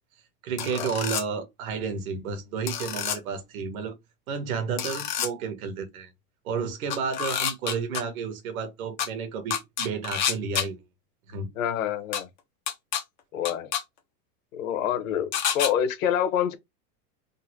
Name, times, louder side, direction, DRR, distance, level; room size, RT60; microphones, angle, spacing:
voice 1, 0.4-3.9 4.3-6.1 6.4-10.8 11.3-11.5, right 5 dB, 65° right, 1.3 m, -31 dB
sound 1, 0.6-1.2 2.7-3.2 4.8-5.3 6.9-8.0 9.0-9.1 9.5-10.6 12.1-12.2 12.7-13.0 13.4-13.8 15.3-15.7, left 8 dB, 35° left, 0.4 m, -28 dB
voice 2, 11.6-12.3 13.3-13.7 14.5-16.6, left 9 dB, 60° left, 0.9 m, -27 dB
3.8 x 2.1 x 2.8 m
supercardioid pair, 180°, 46 cm